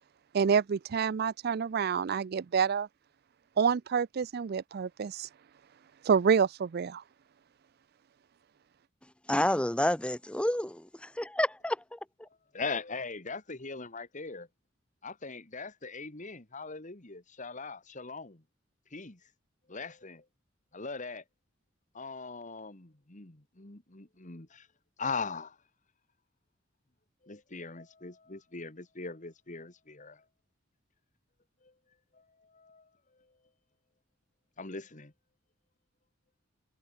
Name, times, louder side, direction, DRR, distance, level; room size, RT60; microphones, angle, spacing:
voice 1, 0.3-2.9 3.6-5.3 6.1-7.0, right 6 dB, 55° right, 0.4 m, -27 dB
voice 2, 9.3-12.3, left 1 dB, 5° left, 0.7 m, -30 dB
voice 3, 12.5-14.5 15.0-18.4 18.9-19.2 19.7-20.3 20.7-21.2 21.9-24.7 25.0-25.6 27.2-30.2 31.6-31.7 32.1-32.9 34.6-35.1, left 4 dB, 40° left, 2.1 m, -40 dB
head